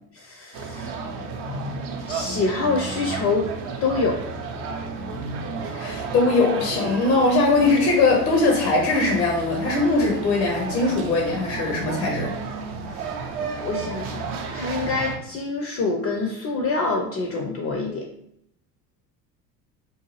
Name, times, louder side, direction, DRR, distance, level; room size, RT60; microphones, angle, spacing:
voice 1, 0.1-0.9 2.0-3.5 3.8-4.2 12.9-13.1 13.6-18.0, left 3 dB, 30° left, 1 dB, 0.4 m, -26 dB
sound 1, 0.5-15.2, right 4 dB, 55° right, 0.6 m, -32 dB
voice 2, 5.7-12.3, left 3 dB, 80° left, 0 dB, 0.7 m, -21 dB
2.6 x 2.3 x 3.0 m, 0.74 s
hypercardioid pair, 65°, 49 cm